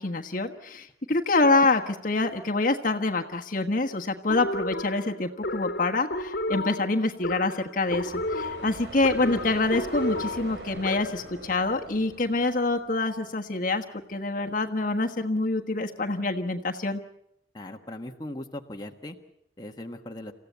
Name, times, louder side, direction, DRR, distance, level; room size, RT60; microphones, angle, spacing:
voice 1, 0.0-17.0, left 2 dB, 50° left, 4 dB, 1.4 m, -26 dB
sound 1, 4.3-11.3, left 1 dB, 75° left, 1.6 m, -33 dB
sound 2, 7.7-13.5, right 2 dB, 85° right, 3.1 m, -43 dB
voice 2, 17.5-19.2 19.6-20.3, left 1 dB, 25° left, 2 dB, 1.4 m, -39 dB
28.0 x 15.5 x 8.2 m, 0.74 s
head